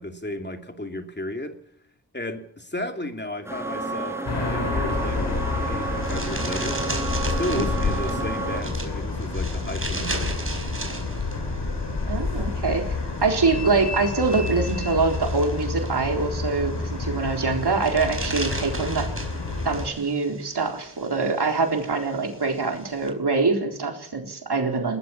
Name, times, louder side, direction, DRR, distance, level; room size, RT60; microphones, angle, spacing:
voice 1, 0.0-1.6 2.1-6.8 7.3-10.5, left 1 dB, 25° left, 5 dB, 2.7 m, -33 dB
sound 1, 3.4-8.6, right 3 dB, 5° right, 6.2 m, -31 dB
sound 2, 4.3-19.9, left 3 dB, 90° left, 6.6 m, -29 dB
sound 3, 4.9-23.1, right 2 dB, 30° right, 5.1 m, -38 dB
voice 2, 12.1-13.0 13.2-19.1 19.6-25.0, right 4 dB, 70° right, 3 dB, 4.1 m, -24 dB
21.0 x 18.5 x 7.2 m, 0.67 s
wide cardioid pair, 65°, 40 cm